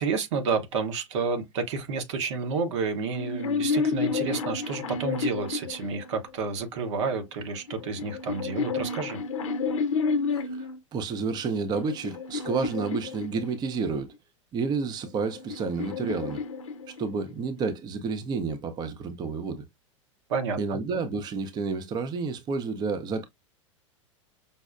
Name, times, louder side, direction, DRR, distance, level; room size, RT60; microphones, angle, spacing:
voice 1, 0.0-9.2 20.3-20.8, right 5 dB, 65° right, 0.9 m, -30 dB
sound 1, 3.1-6.5 7.4-10.8 11.4-13.9 14.9-17.3, left 4 dB, 80° left, 0.6 m, -31 dB
voice 2, 10.3-14.1 14.5-16.4 16.9-19.6 20.6-23.2, right 4 dB, 25° right, 0.5 m, -30 dB
5.2 x 2.0 x 2.4 m
hypercardioid pair, 100°, 16 cm